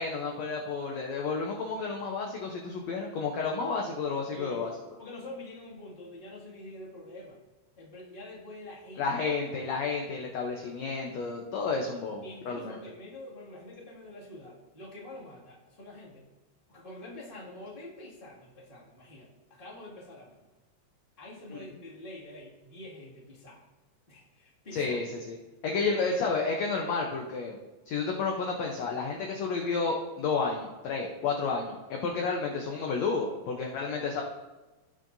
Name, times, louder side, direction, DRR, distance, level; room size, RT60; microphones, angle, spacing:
voice 1, 0.0-4.7 9.0-12.8 21.5-21.6 24.7-25.4 25.6-27.6 27.9-34.2, left 4 dB, 70° left, 1 dB, 1.7 m, -31 dB
voice 2, 1.8-2.2 4.3-4.7 5.0-7.4 7.8-9.1 12.2-16.2 16.7-20.5 21.2-23.6 24.1-25.0 25.9-26.2, left 1 dB, 20° left, -6 dB, 1.8 m, -46 dB
17.5 x 6.5 x 2.7 m, 1.1 s
omnidirectional pair, 3.9 m